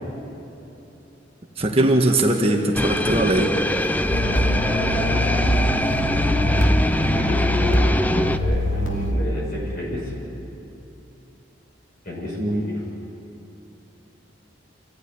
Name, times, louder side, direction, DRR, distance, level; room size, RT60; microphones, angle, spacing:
voice 1, 1.6-3.6 12.4-12.6, right 1 dB, 30° right, 1 dB, 1.6 m, -20 dB
sound 1, 2.7-8.4, left 1 dB, 10° left, 0.5 m, -23 dB
sound 2, 4.1-9.1, equal, 85° left, 2.7 m, -23 dB
voice 2, 4.6-6.6 7.0-10.1 12.0-12.8, left 1 dB, 45° left, -3 dB, 7.4 m, -33 dB
27.0 x 16.0 x 9.8 m, 3.0 s
head